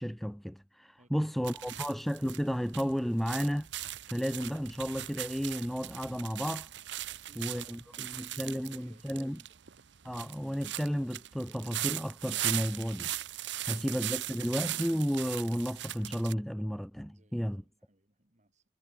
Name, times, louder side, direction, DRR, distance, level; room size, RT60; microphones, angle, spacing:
voice 1, 0.0-3.7 4.1-6.7 7.4-9.4 10.0-13.1 13.6-17.6, equal, ahead, 0.6 m, -33 dB
voice 2, 1.0-1.9 7.1-9.6 17.1-18.6, right 1 dB, 40° right, 3.5 m, -63 dB
sound 1, 1.4-16.3, right 14 dB, 65° right, 0.8 m, -39 dB
head